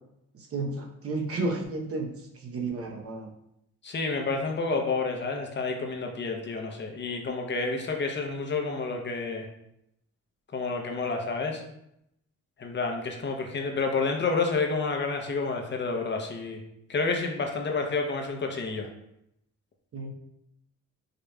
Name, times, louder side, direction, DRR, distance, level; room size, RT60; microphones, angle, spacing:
voice 1, 0.3-2.1 2.3-3.3 19.9-20.1, right 3 dB, 50° right, 0 dB, 0.9 m, -32 dB
voice 2, 3.8-9.5 10.5-11.6 12.6-16.6 16.9-18.9, left 4 dB, 35° left, 3 dB, 0.7 m, -29 dB
5.0 x 2.9 x 2.3 m, 0.79 s
cardioid pair, 90°, 30 cm